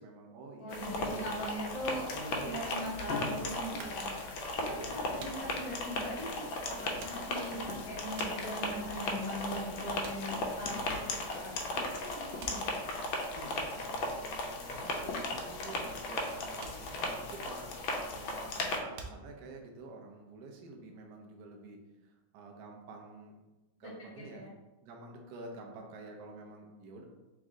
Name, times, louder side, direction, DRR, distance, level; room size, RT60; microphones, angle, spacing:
voice 1, 0.0-1.4 2.0-3.0 4.7-5.5 13.3-23.3 23.8-24.5 24.8-27.0, right 2 dB, 65° right, 1 dB, 1.1 m, -49 dB
voice 2, 0.6-4.2 4.6-12.7 23.8-23.9 24.3-24.5, equal, 10° left, -7 dB, 0.7 m, -41 dB
sound 1, 0.7-18.8, left 2 dB, 90° left, 1.5 m, -36 dB
sound 2, 3.8-11.6 11.9-20.0, right 4 dB, 85° right, 0.7 m, -52 dB
3.5 x 3.1 x 3.6 m, 1.1 s
omnidirectional pair, 2.2 m